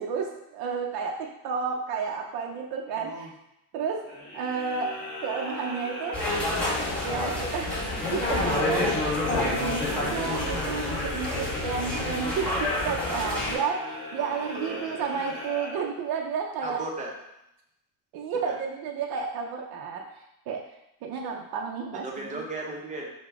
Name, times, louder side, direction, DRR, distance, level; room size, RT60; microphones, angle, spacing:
voice 1, 0.0-3.3 3.7-4.9 5.2-6.2 7.0-7.7 8.1-16.8 18.1-20.1 20.5-20.6 21.0-22.1 22.3-22.4, right 6 dB, 60° right, 1 dB, 0.6 m, -31 dB
voice 2, 2.9-3.3 14.2-15.3 16.6-17.1 18.3-18.6 22.0-23.1, right 2 dB, 20° right, -1 dB, 0.7 m, -37 dB
sound 1, 4.0-16.3, left 2 dB, 25° left, 1.5 m, -37 dB
sound 2, 6.1-13.5, left 2 dB, 5° left, 1.6 m, -28 dB
4.9 x 2.2 x 4.6 m, 0.85 s
cardioid pair, 150°, 41 cm